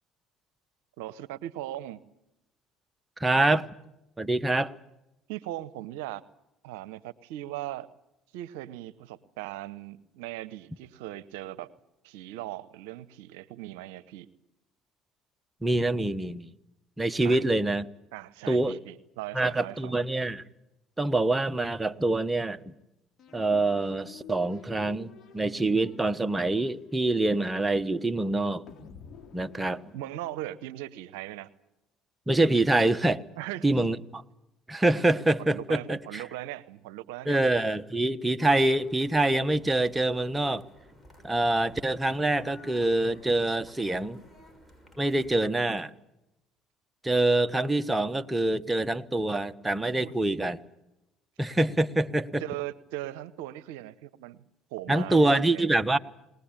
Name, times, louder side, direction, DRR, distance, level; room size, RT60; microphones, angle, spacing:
voice 1, 1.0-2.0 5.3-6.2 6.6-7.9 8.3-11.7 12.0-14.3 17.2-17.4 18.1-20.0 29.9-31.5 33.4-33.7 35.4-37.4 50.0-50.1 52.4-54.4 54.7-55.7, right 14 dB, 80° right, 0.7 m, -39 dB
voice 2, 3.2-3.7 4.2-4.7 15.6-16.5 17.0-17.8 18.5-18.8 19.3-20.4 21.0-22.6 23.3-28.6 29.3-29.8 32.3-33.2 33.6-34.2 34.7-36.2 37.2-40.6 41.2-44.2 45.0-45.9 47.0-50.6 51.4-52.4 54.9-56.0, right 2 dB, 15° right, 1.2 m, -25 dB
sound 1, 23.2-30.7, left 7 dB, 50° left, 3.5 m, -51 dB
sound 2, 38.4-45.4, equal, 10° left, 6.6 m, -54 dB
21.0 x 19.5 x 8.9 m
hypercardioid pair, 65°, 0 cm